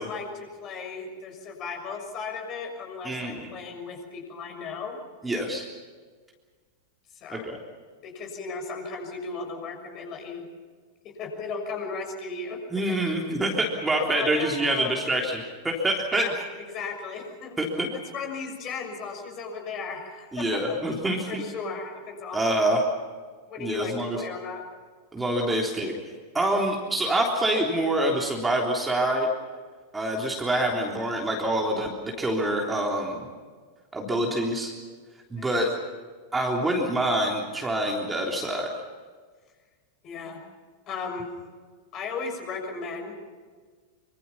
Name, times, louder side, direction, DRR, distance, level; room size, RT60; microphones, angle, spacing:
voice 1, 0.0-5.0 7.1-7.5 8.0-10.5 11.0-12.6 13.9-15.0 16.1-16.3 16.7-17.6 17.9-20.8 21.3-22.4 23.5-24.6 35.3-35.5 40.0-40.4 40.9-41.4 41.9-43.1, left 4 dB, 35° left, 3 dB, 6.3 m, -36 dB
voice 2, 3.0-3.5 5.2-5.7 7.3-7.6 12.7-16.3 17.6-17.9 20.3-21.4 22.3-22.8 23.6-24.2 25.1-25.9 26.3-29.3 29.9-33.3 33.9-34.7 35.3-35.7 36.3-38.8, right 1 dB, 10° right, 0 dB, 3.5 m, -26 dB
25.5 x 25.5 x 5.9 m, 1.5 s
figure-of-eight pair, 90°, 0 cm